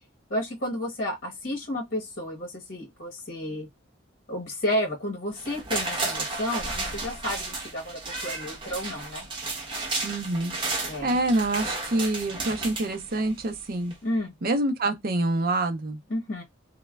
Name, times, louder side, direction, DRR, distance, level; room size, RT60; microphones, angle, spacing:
voice 1, 0.3-3.7 4.3-9.3 10.8-11.2 14.0-14.3 16.1-16.4, left 1 dB, 50° left, 0.9 m, -31 dB
sound 1, 5.4-13.5 13.9-14.0, right 3 dB, 25° right, 0.9 m, -33 dB
voice 2, 10.0-10.6 11.0-13.9 14.4-16.0, right 2 dB, 50° right, 0.5 m, -26 dB
3.1 x 2.1 x 2.2 m
head